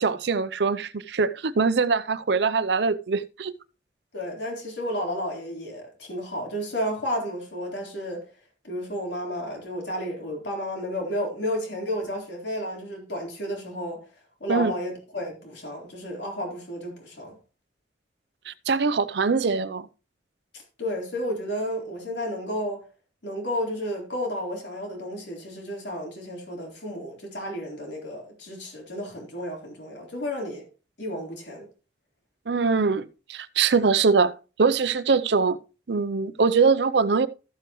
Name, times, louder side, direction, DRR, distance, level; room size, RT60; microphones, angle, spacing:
voice 1, 0.0-3.5 14.5-14.7 18.5-19.9 32.5-34.3 34.6-35.6 35.9-37.3, right 4 dB, 70° right, 0.6 m, -23 dB
voice 2, 4.1-8.2 8.6-14.0 14.4-17.4 20.5-22.8 23.2-30.6 31.0-31.7, equal, 75° left, 3.9 m, -32 dB
13.5 x 7.7 x 3.1 m
head